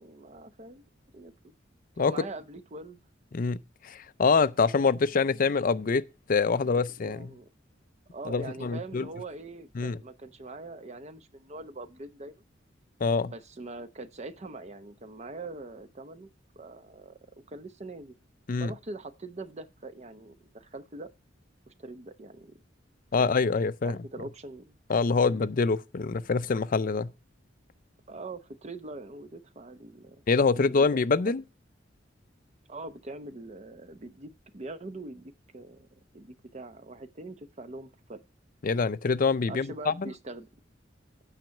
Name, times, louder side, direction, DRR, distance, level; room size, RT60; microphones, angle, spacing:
voice 1, 0.0-1.3 2.0-3.0 6.6-7.5 8.1-12.4 13.2-16.3 16.6-17.2 17.5-18.1 18.6-21.1 21.7-22.6 23.2-23.5 23.8-24.8 25.2-25.3 28.1-30.2 30.5-30.9 31.2-31.3 32.7-35.9 36.1-38.2 39.5-40.5, right 2 dB, 35° right, 0.7 m, -43 dB
voice 2, 3.8-6.0 6.3-7.3 8.3-9.1 9.8-10.0 13.0-13.3 18.5-18.7 23.1-24.0 24.9-27.1 30.3-31.4 38.6-40.1, left 4 dB, 45° left, 0.5 m, -25 dB
9.2 x 5.7 x 6.4 m
head